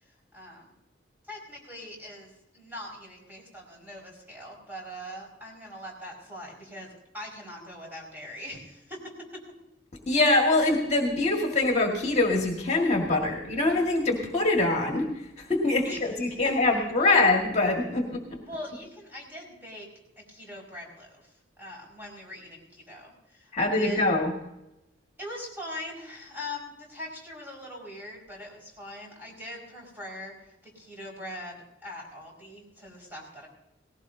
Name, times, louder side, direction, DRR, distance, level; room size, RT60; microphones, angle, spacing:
voice 1, 0.3-0.7 1.3-9.4 15.8-16.0 16.3-16.5 17.0-17.2 18.5-19.9 20.2-24.1 25.2-33.5, left 1 dB, 10° right, -2 dB, 5.3 m, -42 dB
voice 2, 10.1-18.4 23.5-24.3, left 2 dB, 35° left, 1 dB, 1.8 m, -24 dB
19.0 x 16.5 x 2.7 m, 0.90 s
head